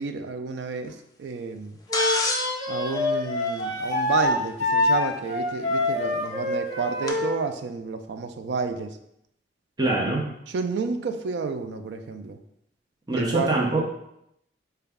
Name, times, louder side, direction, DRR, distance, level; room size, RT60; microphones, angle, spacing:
voice 1, 0.0-1.8 2.7-9.0 10.5-12.4 13.1-13.6, right 4 dB, 65° right, 7 dB, 0.3 m, -30 dB
Wind instrument woodwind instrument, 1.9-7.3, left 2 dB, 40° left, 1.1 m, -25 dB
sound 1, 1.9-4.2 5.8-5.9 7.1-7.2, left 2 dB, 20° left, 0.4 m, -30 dB
voice 2, 9.8-10.2 13.1-13.8, right 2 dB, 20° right, -3 dB, 0.6 m, -23 dB
3.9 x 2.3 x 3.4 m, 0.78 s
head